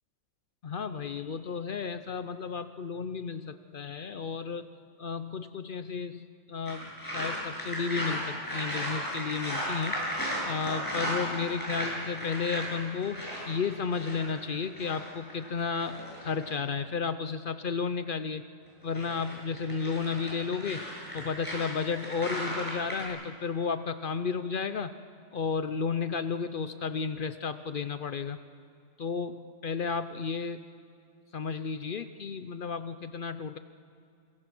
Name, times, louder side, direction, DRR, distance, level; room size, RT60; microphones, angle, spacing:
voice 1, 0.6-4.7 5.0-6.2 6.5-10.0 10.4-18.4 18.8-20.9 21.1-24.9 25.3-28.4 29.0-30.6 31.3-33.6, left 5 dB, 85° left, 11 dB, 0.4 m, -33 dB
sound 1, 6.7-16.5 18.7-23.1, equal, 10° left, 7.9 m, -36 dB
27.0 x 23.0 x 6.0 m, 2.4 s
omnidirectional pair, 1.8 m